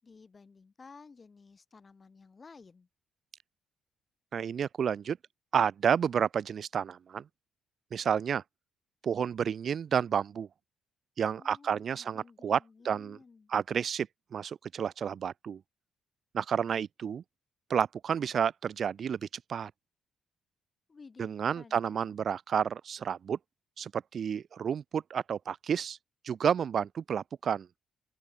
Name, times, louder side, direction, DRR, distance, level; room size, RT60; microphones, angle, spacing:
voice 1, 0.0-2.9 11.4-13.5 20.9-22.1, left 4 dB, 20° left, 5.9 m, -55 dB
voice 2, 4.3-5.2 5.5-7.2 7.9-8.4 9.0-10.5 11.2-13.2 13.5-14.1 14.3-15.6 16.3-17.2 17.7-19.7 21.2-23.4 23.8-26.0 26.2-27.7, right 7 dB, 40° right, 1.1 m, -30 dB
open air
cardioid pair, 175°, 0 cm